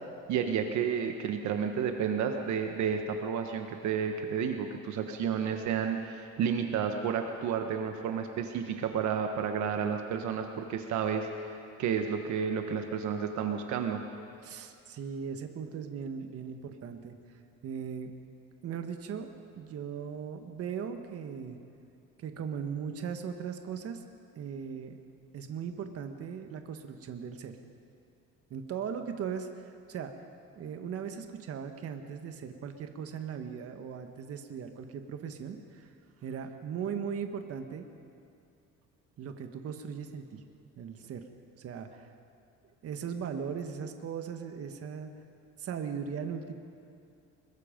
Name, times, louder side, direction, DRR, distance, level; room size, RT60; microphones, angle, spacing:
voice 1, 0.3-14.0, right 7 dB, 65° right, 5 dB, 1.4 m, -31 dB
voice 2, 14.4-17.1 17.6-18.1 18.6-19.3 19.6-21.6 22.2-24.0 24.3-25.0 25.3-27.5 28.5-30.1 30.5-35.9 36.2-37.8 39.2-40.4 40.8-41.2 41.6-42.1 42.8-45.1 45.6-46.5, right 7 dB, 50° right, 6 dB, 1.6 m, -38 dB
24.5 x 22.0 x 5.3 m, 2.5 s
cardioid pair, 135°, 31 cm